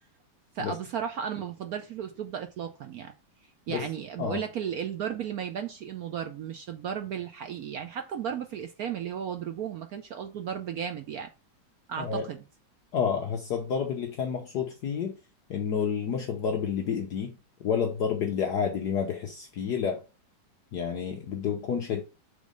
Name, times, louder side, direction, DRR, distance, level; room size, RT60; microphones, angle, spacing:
voice 1, 0.5-3.1 3.7-11.3 11.9-12.4, right 8 dB, 70° right, 0.9 m, -34 dB
voice 2, 12.0-12.3 12.9-15.1 15.5-20.0 20.7-22.0, left 7 dB, 60° left, 1.3 m, -30 dB
6.2 x 3.8 x 5.1 m
omnidirectional pair, 2.2 m